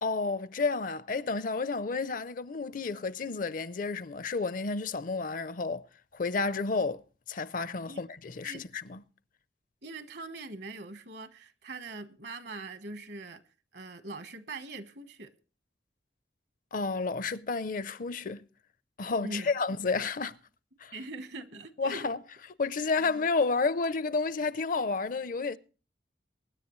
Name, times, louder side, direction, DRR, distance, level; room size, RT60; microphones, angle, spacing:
voice 1, 0.0-5.9 6.1-7.0 7.3-9.0 16.7-18.4 19.0-20.4 20.8-20.9 21.8-22.2 22.6-25.6, left 4 dB, 50° left, 0.5 m, -31 dB
voice 2, 9.8-13.4 13.7-15.3 19.2-19.5 20.9-22.1 23.0-23.2, right 2 dB, 65° right, 1.2 m, -42 dB
24.0 x 10.0 x 3.1 m
head